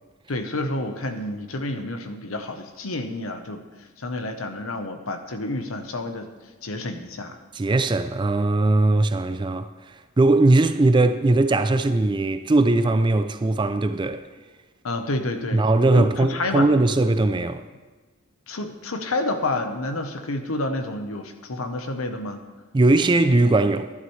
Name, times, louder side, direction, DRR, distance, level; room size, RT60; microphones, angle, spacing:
voice 1, 0.3-3.6 4.0-6.3 6.6-7.4 14.8-16.7 18.5-22.4, left 2 dB, 80° left, 1.0 m, -29 dB
voice 2, 7.5-9.7 10.2-14.2 15.5-17.6 22.7-23.9, right 2 dB, 20° right, 0.4 m, -19 dB
11.5 x 11.0 x 3.2 m
head